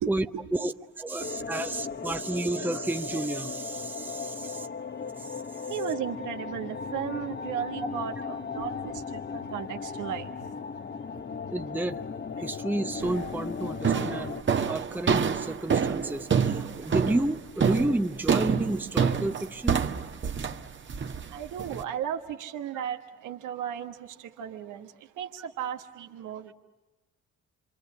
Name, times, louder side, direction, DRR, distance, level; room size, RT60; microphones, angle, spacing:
voice 1, 0.0-0.4 5.7-10.3 21.3-24.0 24.4-24.9 25.2-26.5, right 9 dB, 85° right, 4 dB, 1.4 m, -35 dB
voice 2, 0.5-4.7 5.2-5.3 11.5-12.1 12.4-14.4 14.7-19.8, right 2 dB, 5° right, 7 dB, 0.8 m, -31 dB
sound 1, 1.2-14.4, left 5 dB, 35° left, 1.1 m, -37 dB
sound 2, 13.0-13.3 13.8-21.8, right 6 dB, 40° right, 1.4 m, -27 dB
28.0 x 24.5 x 8.5 m, 1.1 s
cardioid pair, 90°, 30 cm